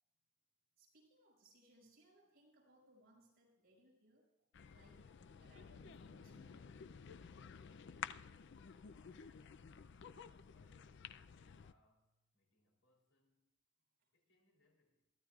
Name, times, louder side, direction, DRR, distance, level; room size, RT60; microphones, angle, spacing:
voice 1, 0.8-4.2 4.7-5.0 5.4-6.8, right 1 dB, 50° right, 6.3 m, -68 dB
sound 1, 4.5-11.7, left 7 dB, 55° left, 0.4 m, -53 dB
voice 2, 8.9-13.5 14.1-15.1, left 2 dB, 75° left, 3.3 m, -78 dB
22.5 x 14.0 x 2.4 m
head